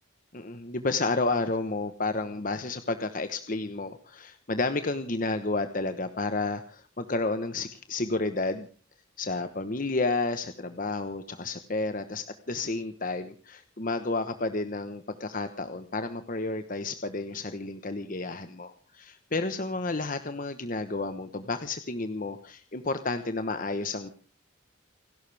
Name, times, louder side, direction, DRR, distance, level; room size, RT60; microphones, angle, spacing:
voice 1, 0.3-8.7 9.2-24.1, left 3 dB, 40° left, 9 dB, 1.1 m, -31 dB
30.0 x 12.5 x 3.5 m, 0.40 s
head